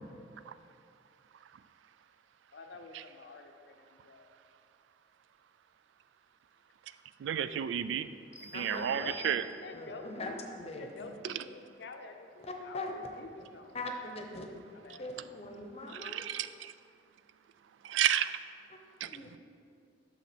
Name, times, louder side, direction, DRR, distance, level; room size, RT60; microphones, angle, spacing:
voice 1, 2.5-4.3 8.9-13.8 14.7-15.1, left 3 dB, 65° left, 6 dB, 0.6 m, -48 dB
voice 2, 7.2-8.1 8.5-9.4 11.2-11.4 15.9-16.7 17.8-18.3 19.0-19.1, right 10 dB, 80° right, 13 dB, 0.3 m, -31 dB
sound 1, 8.3-10.0, left 2 dB, 5° right, 0.9 m, -51 dB
voice 3, 8.5-9.1 9.7-11.1 12.4-12.9 13.7-14.5 15.0-16.2 19.1-19.4, left 2 dB, 35° left, 3 dB, 0.8 m, -41 dB
7.2 x 6.1 x 4.4 m, 2.4 s
head